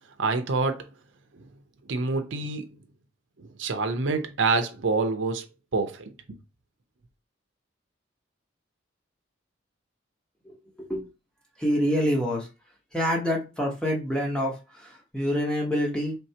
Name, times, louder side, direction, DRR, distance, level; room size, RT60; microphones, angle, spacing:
voice 1, 0.2-0.8 1.3-1.5 1.8-2.8 3.4-5.5 5.7-6.1, right 3 dB, 75° right, 0.6 m, -27 dB
voice 2, 10.4-11.1 11.6-12.5 12.9-16.2, equal, 5° left, 1.0 m, -27 dB
4.4 x 3.3 x 2.8 m
head